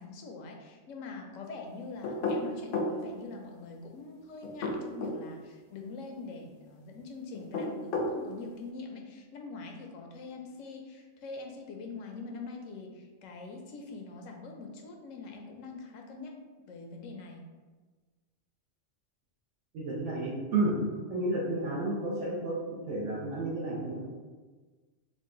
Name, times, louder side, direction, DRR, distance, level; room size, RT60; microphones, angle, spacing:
voice 1, 0.0-16.4 16.7-17.4, left 3 dB, 90° left, 2 dB, 1.0 m, -44 dB
sound 1, 2.0-3.0 4.4-5.2 7.3-8.2, left 2 dB, 60° left, 0.6 m, -31 dB
voice 2, 19.7-20.8 21.1-24.0, right 2 dB, 70° right, -6 dB, 1.0 m, -31 dB
3.8 x 2.2 x 3.7 m, 1.4 s
omnidirectional pair, 1.3 m